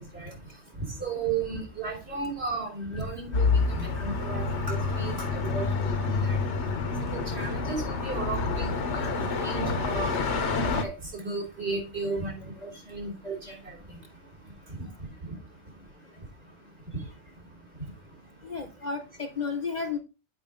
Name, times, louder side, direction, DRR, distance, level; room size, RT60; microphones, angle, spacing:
voice 1, 1.0-3.4 3.7-5.7 6.3-6.4 7.1-9.1 9.4-12.4 12.6-13.8, right 4 dB, 60° right, -3 dB, 3.3 m, -34 dB
sound 1, 3.3-10.8, left 4 dB, 70° left, 1.3 m, -28 dB
voice 2, 18.4-20.0, left 5 dB, 40° left, 4 dB, 0.9 m, -32 dB
8.6 x 4.8 x 3.6 m, 0.28 s
omnidirectional pair, 1.2 m